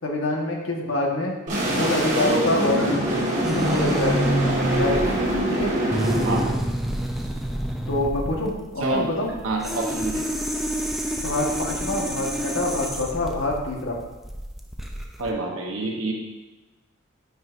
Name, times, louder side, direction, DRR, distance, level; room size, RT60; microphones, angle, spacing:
voice 1, 0.0-1.4 1.7-4.2 4.7-5.2 5.5-5.7 7.9-9.3 11.1-14.0, left 2 dB, 65° left, -1 dB, 1.3 m, -26 dB
sound 1, 1.5-6.5, right 1 dB, 35° right, 1.5 m, -24 dB
sound 2, 3.4-15.3, equal, ahead, 0.4 m, -28 dB
voice 2, 9.4-10.2 15.2-16.1, right 2 dB, 75° right, 0 dB, 0.9 m, -27 dB
9.1 x 5.5 x 2.5 m, 1.1 s
head